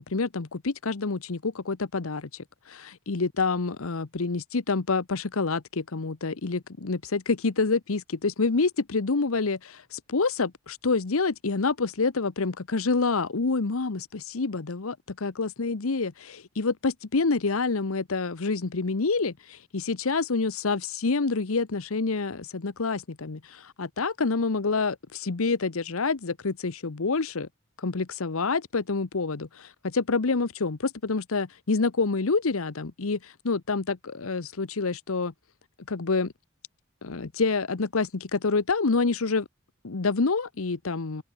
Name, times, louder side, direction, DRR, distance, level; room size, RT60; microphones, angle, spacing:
voice 1, 0.0-2.3 2.7-27.5 27.8-35.3 35.9-36.3 37.0-39.5 39.8-41.2, left 4 dB, 80° left, 0.9 m, -27 dB
head